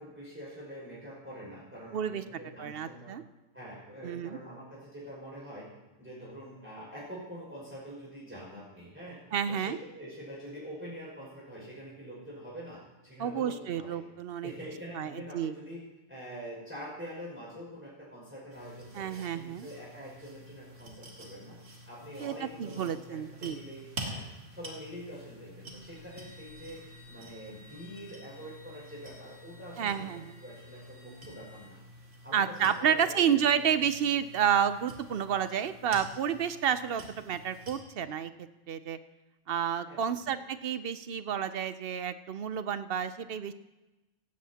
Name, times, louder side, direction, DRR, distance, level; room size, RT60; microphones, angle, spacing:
voice 1, 0.0-3.1 3.5-5.7 6.0-9.2 9.5-14.0 14.4-15.8 16.1-21.6 21.9-24.2 24.5-30.1 30.4-31.8 32.2-33.2 39.9-40.4, equal, 10° right, -6 dB, 5.5 m, -45 dB
voice 2, 1.9-2.2 2.6-3.2 4.0-4.4 9.3-9.8 13.2-14.5 14.9-15.5 18.9-19.7 22.2-23.6 29.8-30.3 32.3-38.3 38.7-39.0 39.5-43.5, right 8 dB, 60° right, 12 dB, 0.7 m, -30 dB
sound 1, 18.5-37.8, right 1 dB, 75° right, 2.4 m, -48 dB
sound 2, 25.7-31.7, left 2 dB, 80° left, 4.7 m, -57 dB
16.5 x 16.0 x 2.9 m, 1.1 s
omnidirectional pair, 1.3 m